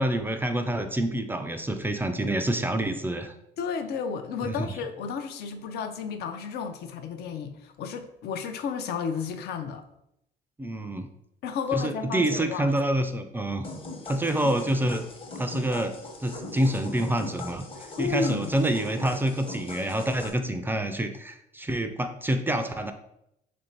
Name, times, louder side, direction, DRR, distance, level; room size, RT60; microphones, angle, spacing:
voice 1, 0.0-3.3 4.4-4.7 10.6-11.1 11.7-13.7 14.1-15.0 15.4-15.9 16.2-22.9, right 1 dB, 10° right, 7 dB, 0.3 m, -27 dB
voice 2, 3.6-9.8 11.4-12.7 14.3-14.5 18.0-18.6, left 6 dB, 70° left, 7 dB, 0.5 m, -32 dB
sound 1, 13.6-20.3, left 2 dB, 35° left, 0.9 m, -40 dB
3.2 x 2.6 x 4.4 m, 0.80 s
cardioid pair, 110°, 17 cm